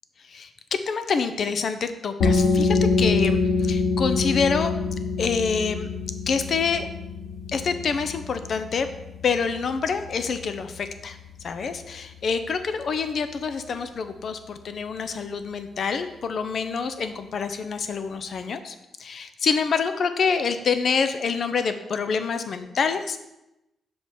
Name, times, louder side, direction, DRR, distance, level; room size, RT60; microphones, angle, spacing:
voice 1, 0.3-4.7 5.2-5.9 6.3-6.9 7.5-8.9 9.2-11.2 11.4-18.7 19.0-23.3, left 5 dB, 55° left, 10 dB, 0.7 m, -26 dB
sound 1, 2.2-13.6, left 4 dB, 70° left, 1.3 m, -27 dB
6.1 x 5.3 x 5.1 m, 0.92 s
cardioid pair, 110°, 0 cm